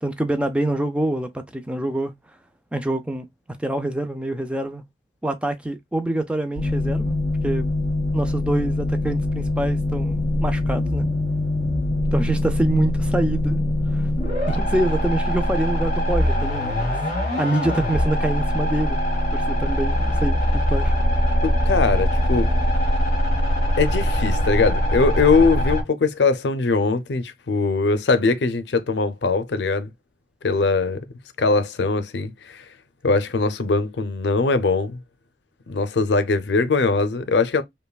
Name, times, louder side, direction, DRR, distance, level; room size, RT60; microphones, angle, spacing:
voice 1, 0.0-2.1 2.7-3.3 3.6-4.8 5.2-7.2 7.4-7.7 8.1-11.1 12.1-13.6 13.9-14.1 14.5-16.9 17.4-19.0 19.3-20.9 21.2-21.4, right 1 dB, 5° right, 0.4 m, -25 dB
sound 1, 6.6-25.8, left 1 dB, 40° left, 2.9 m, -22 dB
voice 2, 21.4-22.5 23.8-29.9 30.4-31.0 31.4-32.6 33.0-35.0 35.7-37.6, left 3 dB, 80° left, 0.5 m, -21 dB
5.4 x 2.2 x 2.3 m
head